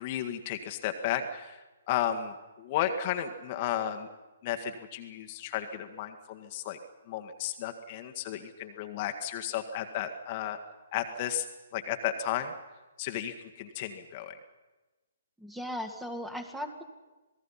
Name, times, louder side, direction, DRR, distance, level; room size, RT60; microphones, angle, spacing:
voice 1, 0.0-4.1 4.4-6.8 7.1-10.6 10.9-11.5 11.7-12.5 13.0-14.4, left 10 dB, 35° left, 6 dB, 1.7 m, -33 dB
voice 2, 15.4-16.8, equal, 5° right, 6 dB, 2.1 m, -37 dB
27.0 x 19.0 x 5.7 m, 1.1 s
figure-of-eight pair, 130°, 0 cm